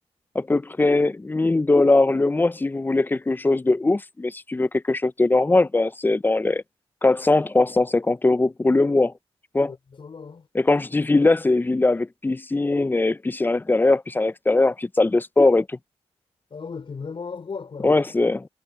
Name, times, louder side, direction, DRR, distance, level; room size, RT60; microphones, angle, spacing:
voice 1, 0.3-6.6 7.0-9.1 9.5-9.7 10.5-15.8 17.8-18.5, left 2 dB, 20° left, 0.5 m, -20 dB
voice 2, 9.6-10.5 16.5-18.0, left 5 dB, 50° left, 4.6 m, -36 dB
cardioid pair, 90°, 11 cm